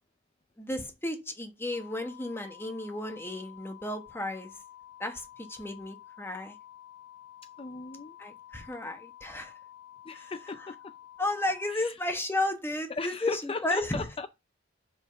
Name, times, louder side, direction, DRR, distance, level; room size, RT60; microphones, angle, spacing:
voice 1, 0.6-4.5 5.0-6.5 8.2-9.5 10.1-10.3 11.2-14.1, left 1 dB, 10° left, 1.4 m, -33 dB
sound 1, 1.7-11.7, left 11 dB, 90° left, 1.6 m, -51 dB
voice 2, 7.6-8.2 10.0-10.9 11.7-12.0 12.9-14.3, left 3 dB, 30° left, 0.5 m, -37 dB
5.8 x 5.6 x 6.8 m
head